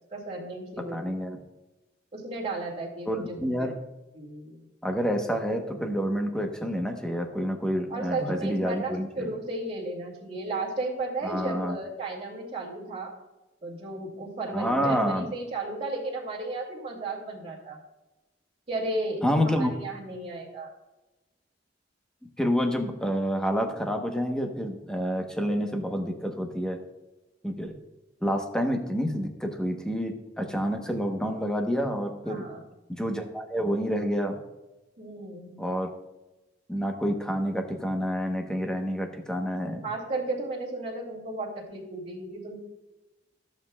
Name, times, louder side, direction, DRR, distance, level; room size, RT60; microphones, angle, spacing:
voice 1, 0.1-1.1 2.1-3.7 4.1-4.7 7.9-13.1 13.6-17.8 18.7-20.7 32.2-32.6 35.0-35.6 39.8-42.6, right 2 dB, 35° right, -4 dB, 2.4 m, -34 dB
voice 2, 0.8-1.4 3.1-3.8 4.8-9.3 11.2-11.8 14.5-15.3 19.2-19.7 22.4-26.8 27.4-27.7 28.2-32.4 32.9-34.4 35.6-35.9 36.7-39.8, equal, 5° left, 4 dB, 1.0 m, -28 dB
14.0 x 7.6 x 2.4 m, 1.0 s
head